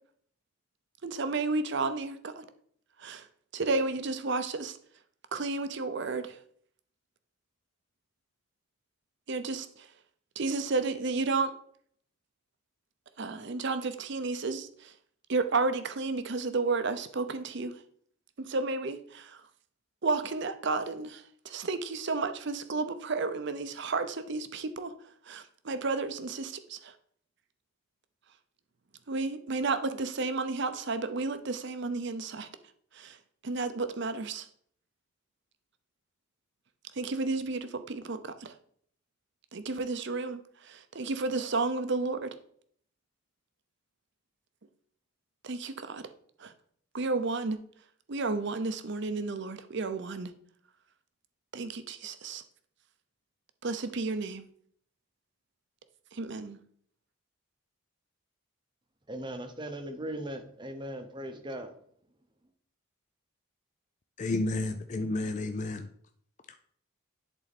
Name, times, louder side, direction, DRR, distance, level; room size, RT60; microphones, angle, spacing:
voice 1, 1.0-2.4 3.0-3.3 3.5-4.8 5.3-6.4 9.3-9.9 10.4-11.5 13.2-14.9 15.3-17.7 18.5-19.4 20.0-24.9 25.3-26.9 29.1-32.5 32.9-33.2 33.4-34.5 36.9-38.5 39.5-42.3 45.4-46.0 46.4-46.5 46.9-47.6 48.1-50.3 51.5-52.4 53.6-54.5 56.1-56.6, right 3 dB, 55° right, 0.6 m, -32 dB
voice 2, 59.1-61.7, right 1 dB, 20° right, 0.8 m, -38 dB
voice 3, 64.2-65.9 66.5-66.6, left 2 dB, 35° left, 0.4 m, -31 dB
11.0 x 4.0 x 4.1 m
head